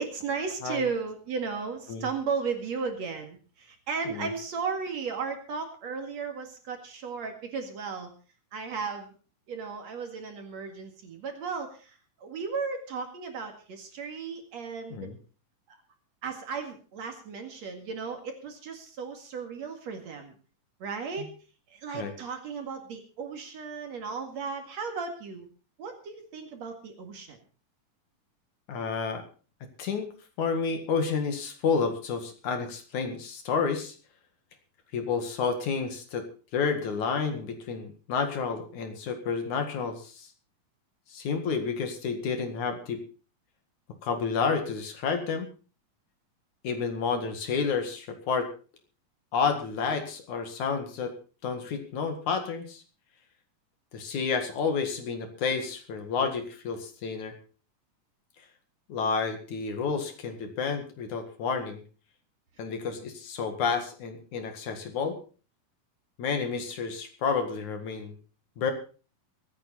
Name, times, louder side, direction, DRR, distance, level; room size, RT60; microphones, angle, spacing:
voice 1, 0.0-8.1 8.5-9.1 9.5-15.1 15.7-15.8 16.2-20.3 20.8-21.3 21.7-25.5 25.8-27.4, right 5 dB, 55° right, 5 dB, 3.0 m, -35 dB
voice 2, 28.7-29.2 29.8-30.1 30.4-34.0 34.9-36.2 36.5-40.3 41.1-43.0 44.0-45.5 46.6-48.5 49.3-51.1 51.4-52.8 53.9-57.3 58.9-61.8 62.6-65.2 66.2-68.1 68.6-68.7, left 5 dB, 60° left, 6 dB, 3.2 m, -30 dB
24.0 x 9.4 x 4.2 m, 0.37 s
omnidirectional pair, 4.0 m